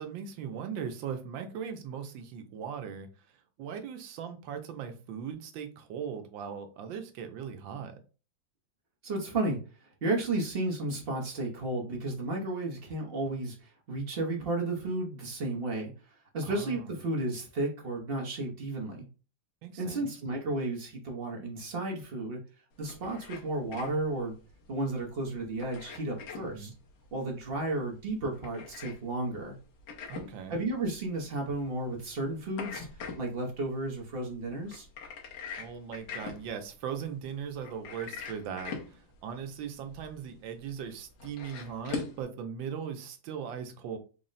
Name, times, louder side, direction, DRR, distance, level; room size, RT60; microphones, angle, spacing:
voice 1, 0.0-3.1 3.6-7.9 16.4-16.9 19.6-20.1 26.4-26.7 30.1-30.6 35.6-44.0, right 7 dB, 85° right, 1.4 m, -39 dB
voice 2, 9.0-9.6 10.0-13.6 13.9-15.9 16.3-19.1 19.8-22.4 22.8-24.4 24.7-26.7 27.1-29.5 30.5-32.9 33.2-34.9, right 2 dB, 50° right, 0.7 m, -33 dB
sound 1, 22.7-42.2, left 6 dB, 80° left, 1.6 m, -44 dB
4.2 x 2.1 x 3.8 m
omnidirectional pair, 2.0 m